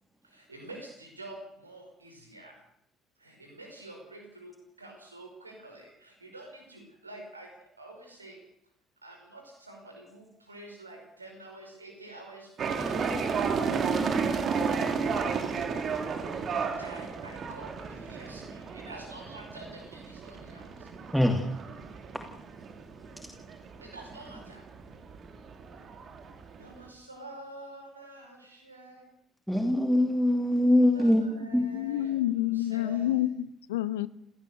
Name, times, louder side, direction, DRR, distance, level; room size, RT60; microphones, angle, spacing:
voice 1, 0.2-2.6 3.2-8.4 9.0-13.5 16.4-20.9 23.8-24.6 26.6-29.1 30.9-33.3, right 2 dB, 90° right, 5.1 m, -48 dB
sound 1, 12.6-26.9, right 5 dB, 45° right, 3.5 m, -33 dB
Piano, 12.8-19.0, right 2 dB, 15° right, 1.7 m, -45 dB
voice 2, 21.1-21.5 22.1-22.2 29.5-31.2 31.5-31.8, left 1 dB, ahead, 2.6 m, -23 dB
voice 3, 31.7-34.1, left 13 dB, 75° left, 0.9 m, -28 dB
28.0 x 17.5 x 6.8 m
figure-of-eight pair, 55°, 0 cm